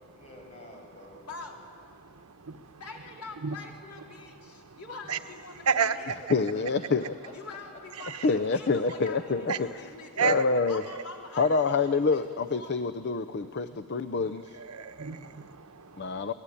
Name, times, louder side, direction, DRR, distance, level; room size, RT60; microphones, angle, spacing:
voice 1, 0.1-1.2 5.0-5.2 5.5-5.7 6.3-7.3 7.7-8.0 8.6-9.6, left 1 dB, 30° left, 0 dB, 6.5 m, -51 dB
voice 2, 1.3-1.7 2.8-6.3 7.3-10.3 10.7-12.9, left 3 dB, 85° left, 1 dB, 3.7 m, -44 dB
voice 3, 5.6-6.1 8.1-8.2 9.5-9.6 10.2-10.4 14.5-16.3, right 6 dB, 85° right, 9 dB, 1.2 m, -30 dB
voice 4, 6.3-7.0 8.2-9.7 10.2-10.8 11.4-14.6 16.0-16.3, left 4 dB, 50° left, 12 dB, 0.6 m, -26 dB
28.0 x 19.5 x 10.0 m, 2.3 s
head